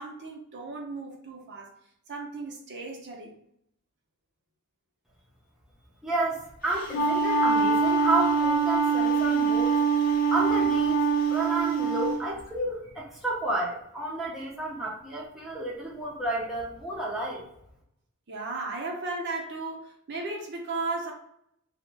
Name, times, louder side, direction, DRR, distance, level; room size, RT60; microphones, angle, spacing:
voice 1, 0.0-1.7 2.1-3.4 18.3-21.1, right 3 dB, 55° right, 0.6 m, -35 dB
voice 2, 6.0-9.7 10.3-11.0 11.3-17.4, right 2 dB, ahead, 0.5 m, -31 dB
Wind instrument woodwind instrument, 6.7-12.2, right 4 dB, 40° left, 0.6 m, -24 dB
2.4 x 2.1 x 3.1 m
head